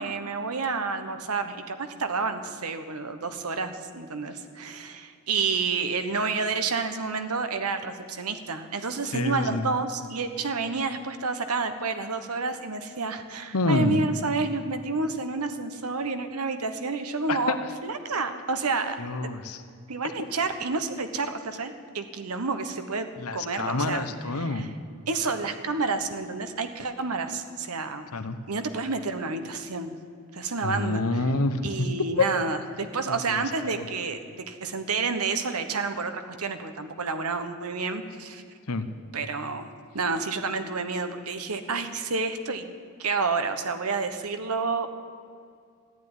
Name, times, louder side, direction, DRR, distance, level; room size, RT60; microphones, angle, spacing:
voice 1, 0.0-17.6 17.8-19.0 19.2-19.3 19.9-24.1 24.3-24.7 25.1-28.1 28.5-30.0 30.3-31.2 31.6-38.4 39.1-42.7 43.0-44.9, right 4 dB, 90° right, 8 dB, 1.2 m, -29 dB
voice 2, 9.1-9.6 13.5-14.1 17.3-17.6 19.0-19.6 23.2-24.7 28.1-28.4 30.6-31.9 33.3-33.9 38.7-38.9, left 2 dB, 90° left, 10 dB, 1.0 m, -28 dB
14.0 x 9.5 x 9.9 m, 2.2 s
head